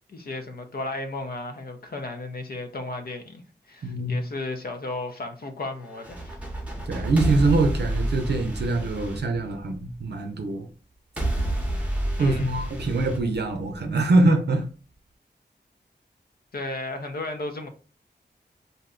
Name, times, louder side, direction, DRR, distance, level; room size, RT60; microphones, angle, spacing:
voice 1, 0.1-6.4 12.2-13.0 16.5-17.7, left 2 dB, 60° left, 0.6 m, -34 dB
voice 2, 3.8-4.2 6.9-10.7 12.2-14.7, right 2 dB, 70° right, 0.5 m, -23 dB
sound 1, 5.9-10.0 11.2-14.0, right 1 dB, 5° right, 0.8 m, -29 dB
2.6 x 2.1 x 3.7 m
wide cardioid pair, 95°, 18 cm